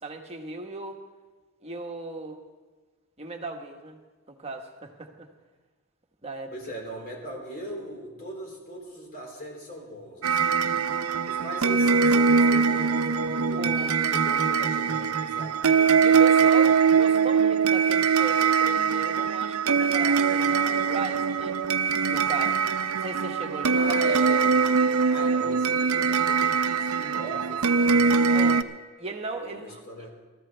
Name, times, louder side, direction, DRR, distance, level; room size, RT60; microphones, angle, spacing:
voice 1, 0.0-1.0 1.6-2.4 3.2-4.0 4.3-5.3 6.2-6.5 13.5-14.0 15.6-21.6 22.1-22.6 22.9-23.9 28.3-28.6 29.0-29.8, right 3 dB, 30° right, 3 dB, 1.4 m, -37 dB
voice 2, 6.5-10.6 11.2-13.6 14.0-15.6 23.7-24.6 25.1-28.6 29.4-30.2, right 1 dB, 45° left, -1 dB, 4.2 m, -39 dB
sound 1, 10.2-28.6, right 5 dB, 90° right, 0.7 m, -22 dB
22.5 x 14.0 x 3.4 m, 1.3 s
head